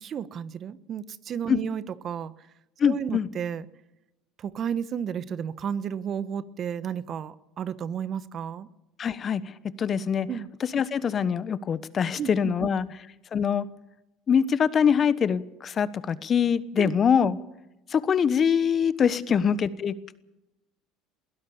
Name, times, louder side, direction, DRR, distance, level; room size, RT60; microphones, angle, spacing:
voice 1, 0.0-2.3 2.8-3.6 4.4-8.7 10.3-10.5 12.2-12.7 16.8-16.9 17.2-17.3, right 8 dB, 45° right, 16 dB, 1.1 m, -32 dB
voice 2, 2.8-3.3 9.0-9.5 9.8-10.3 10.7-12.9 13.3-13.7 14.3-17.4 17.9-19.9, left 7 dB, 40° left, 16 dB, 1.2 m, -24 dB
22.0 x 16.5 x 7.1 m, 0.91 s
hypercardioid pair, 80°, 0 cm